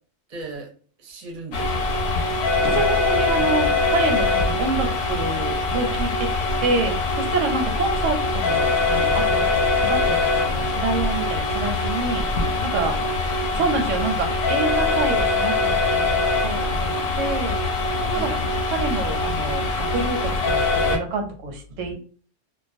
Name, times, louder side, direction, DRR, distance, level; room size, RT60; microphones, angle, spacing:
voice 1, 0.3-0.7 1.0-1.9 7.6-7.7 12.3-13.2 13.5-13.7 16.5-17.3 18.1-18.5 21.9-22.0, right 3 dB, 45° right, 2 dB, 0.6 m, -38 dB
sound 1, 1.5-21.0, left 3 dB, 70° left, 0.8 m, -23 dB
voice 2, 2.6-6.3 6.6-12.2 12.6-13.0 13.5-16.5 17.2-17.5 18.0-18.3 18.7-21.9, right 3 dB, 90° right, 5 dB, 0.9 m, -27 dB
2.3 x 2.1 x 2.5 m, 0.42 s
omnidirectional pair, 1.3 m